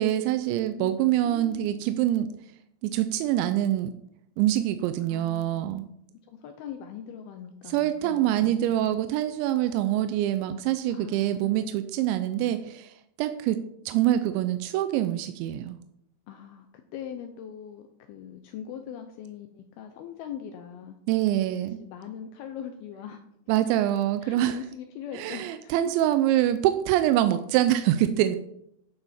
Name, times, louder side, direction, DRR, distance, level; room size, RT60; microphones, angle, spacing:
voice 1, 0.0-2.3 2.8-3.9 4.4-5.8 7.7-15.8 21.1-21.8 23.5-24.6 25.1-28.4, right 12 dB, 90° right, 10 dB, 2.9 m, -25 dB
voice 2, 1.2-1.7 5.1-5.8 6.1-8.8 10.9-11.8 16.3-21.0 21.8-23.2 24.2-25.9, left 9 dB, 90° left, 6 dB, 2.2 m, -41 dB
11.5 x 6.9 x 4.3 m, 0.75 s
omnidirectional pair, 5.2 m